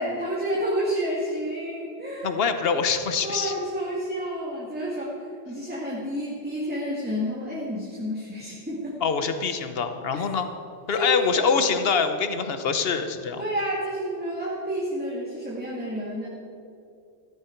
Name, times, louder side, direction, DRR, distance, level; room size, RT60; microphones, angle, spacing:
voice 1, 0.0-2.4 3.2-9.0 10.1-10.2 10.9-11.4 13.4-16.3, equal, 10° right, -6 dB, 2.1 m, -30 dB
voice 2, 2.2-3.5 9.0-10.5 10.9-13.4, left 5 dB, 60° left, 8 dB, 1.2 m, -24 dB
14.5 x 14.0 x 4.5 m, 2.6 s
omnidirectional pair, 1.2 m